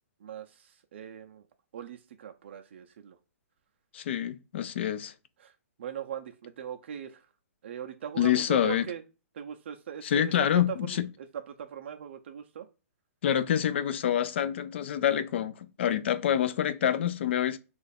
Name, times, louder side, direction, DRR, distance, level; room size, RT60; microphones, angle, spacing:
voice 1, 0.2-1.4 1.7-3.2 5.4-5.5 5.8-7.3 7.6-9.0 9.3-10.8 11.2-12.7, right 9 dB, 50° right, 0.4 m, -40 dB
voice 2, 3.9-5.1 8.2-8.9 10.0-11.1 13.2-17.6, left 10 dB, 50° left, 0.3 m, -27 dB
3.0 x 2.4 x 4.1 m
hypercardioid pair, 170°, 8 cm